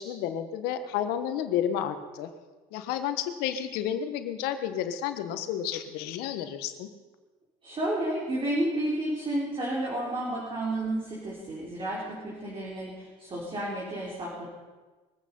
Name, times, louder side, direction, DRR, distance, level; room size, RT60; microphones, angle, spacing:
voice 1, 0.0-2.3 2.7-6.9, left 9 dB, 85° left, 8 dB, 1.4 m, -31 dB
voice 2, 7.6-14.5, right 1 dB, 35° right, -5 dB, 4.1 m, -31 dB
22.5 x 8.6 x 5.5 m, 1.3 s
cardioid pair, 100°, 16 cm